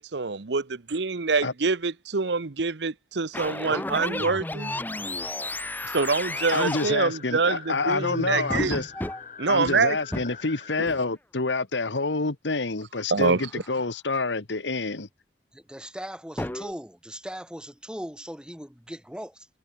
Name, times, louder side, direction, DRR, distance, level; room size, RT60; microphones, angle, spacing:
voice 1, 0.1-4.7 5.9-8.8 9.4-10.0 13.1-13.4, right 4 dB, 75° right, 0.9 m, -25 dB
sound 1, 3.3-7.0 7.9-9.2 9.7-9.8 10.1-10.3 10.9-11.1 13.4-13.8 16.4-16.7, left 1 dB, 10° left, 1.0 m, -32 dB
sound 2, 5.9-10.9, left 6 dB, 45° left, 3.5 m, -44 dB
voice 2, 6.5-8.9 9.5-15.1, left 3 dB, 85° left, 1.5 m, -28 dB
voice 3, 15.5-19.5, equal, 5° right, 2.4 m, -39 dB
head